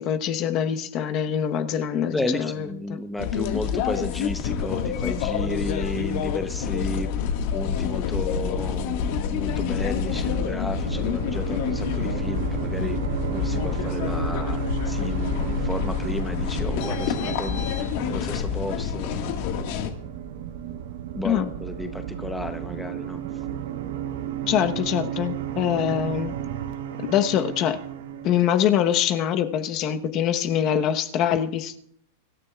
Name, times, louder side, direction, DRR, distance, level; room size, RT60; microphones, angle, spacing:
voice 1, 0.0-3.0 21.2-21.5 24.5-26.3 27.1-27.8 28.2-31.8, left 9 dB, 40° left, 8 dB, 1.0 m, -24 dB
voice 2, 2.1-7.1 7.5-9.0 9.3-13.0 13.3-17.6 18.1-19.2 21.1-23.2, left 2 dB, 5° left, 6 dB, 0.8 m, -33 dB
sound 1, 3.2-19.9, left 7 dB, 55° left, 1.6 m, -27 dB
sound 2, 8.9-28.4, right 9 dB, 85° right, 1.9 m, -35 dB
sound 3, 9.0-26.7, right 10 dB, 55° right, 0.9 m, -38 dB
24.5 x 13.5 x 2.4 m, 0.65 s
supercardioid pair, 145°, 0 cm